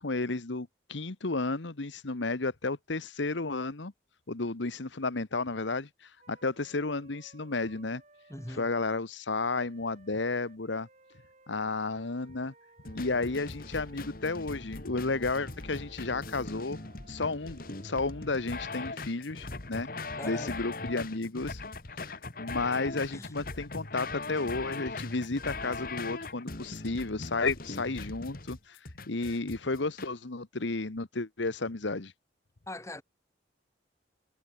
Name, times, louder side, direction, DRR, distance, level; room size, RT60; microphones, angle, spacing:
voice 1, 0.0-3.9 4.3-8.0 8.5-10.9 11.5-12.5 12.9-16.8 17.1-19.9 20.2-21.6 22.1-28.8 29.1-32.1, left 3 dB, 80° left, 1.2 m, -32 dB
Wind instrument woodwind instrument, 6.2-8.7 9.3-14.0 14.6-20.0, right 2 dB, 40° right, 7.0 m, -61 dB
voice 2, 8.3-8.7 20.2-20.6 22.9-23.3 32.7-33.0, left 1 dB, 15° left, 2.9 m, -42 dB
sound 1, 12.9-30.1, left 3 dB, 50° left, 1.8 m, -40 dB
head